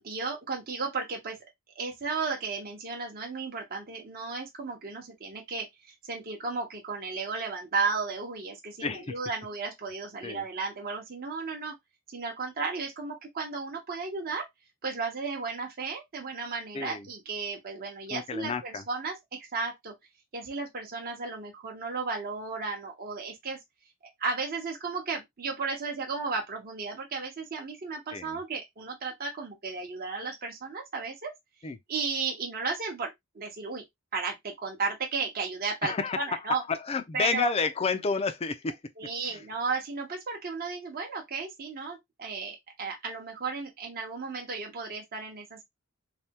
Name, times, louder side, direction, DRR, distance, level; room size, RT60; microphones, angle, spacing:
voice 1, 0.0-1.4 1.8-11.7 12.1-14.5 14.8-19.1 19.5-19.9 20.3-23.6 24.2-31.3 31.9-33.8 34.1-36.6 37.1-37.5 39.0-45.6, right 4 dB, 45° right, 0.8 m, -34 dB
voice 2, 8.8-9.2 10.2-10.5 16.7-17.1 18.1-18.8 28.1-28.4 31.6-31.8 35.8-38.8 39.2-39.4, left 4 dB, 25° left, 0.4 m, -31 dB
3.3 x 2.2 x 2.7 m
head